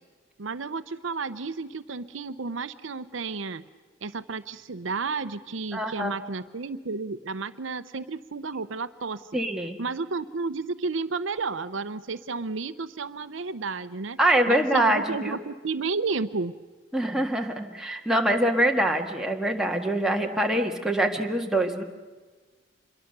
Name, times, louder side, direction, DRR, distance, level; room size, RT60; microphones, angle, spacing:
voice 1, 0.4-3.6 4.0-9.4 9.8-14.2 14.5-16.5, right 4 dB, 75° right, 12 dB, 0.8 m, -32 dB
voice 2, 5.7-6.1 9.3-9.8 14.2-15.4 16.9-21.8, right 1 dB, 5° right, 1 dB, 1.7 m, -24 dB
26.5 x 22.5 x 6.8 m, 1.4 s
head